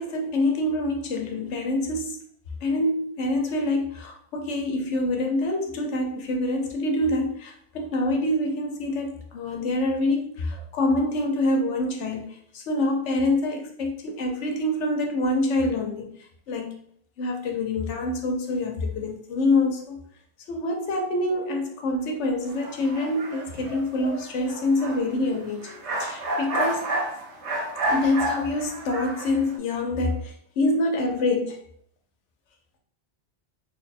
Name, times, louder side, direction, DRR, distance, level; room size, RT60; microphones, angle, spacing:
voice 1, 0.0-2.2 2.6-12.3 12.5-16.1 16.5-16.7 17.2-20.0 20.5-25.7 26.0-26.9 27.9-31.6, left 2 dB, 90° left, 3 dB, 1.0 m, -26 dB
sound 1, 22.5-29.6, right 1 dB, 80° right, 1.1 m, -30 dB
3.3 x 2.2 x 4.0 m, 0.66 s
omnidirectional pair, 1.2 m